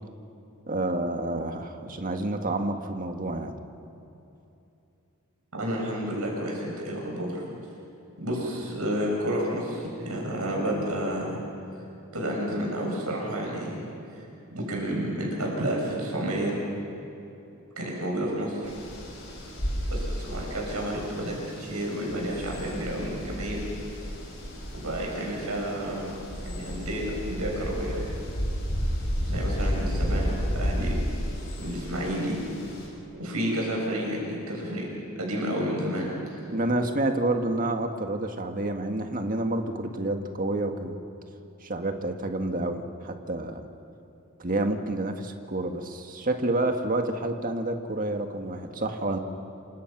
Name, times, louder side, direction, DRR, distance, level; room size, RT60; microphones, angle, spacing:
voice 1, 0.7-3.5 36.5-41.0 41.6-43.6 44.4-49.2, right 2 dB, 40° right, 5 dB, 1.8 m, -29 dB
voice 2, 5.5-7.4 8.2-11.4 12.1-13.8 14.1-14.2 14.5-16.6 17.8-18.7 19.9-23.6 24.7-26.1 26.4-28.0 29.1-31.0 31.6-32.4 33.2-34.8 35.2-36.1, equal, 90° right, -2 dB, 7.9 m, -30 dB
sound 1, 18.6-32.9, equal, 60° left, 7.6 m, -32 dB
28.5 x 26.0 x 6.1 m, 2.8 s
head